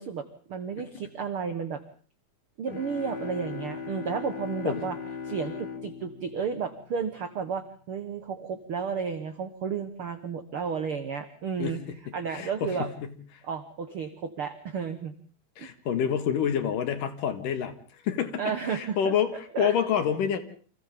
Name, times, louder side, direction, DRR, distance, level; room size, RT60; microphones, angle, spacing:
voice 1, 0.0-1.8 2.6-5.0 5.2-11.8 12.1-12.9 13.4-15.1 15.6-15.7 18.4-19.1 19.5-19.7, right 6 dB, 90° right, 9 dB, 1.2 m, -32 dB
sound 1, 2.7-7.3, left 6 dB, 45° left, 1.3 m, -39 dB
voice 2, 11.6-13.4 15.6-20.4, left 8 dB, 65° left, 9 dB, 3.0 m, -28 dB
29.5 x 25.5 x 3.7 m, 0.44 s
omnidirectional pair, 4.4 m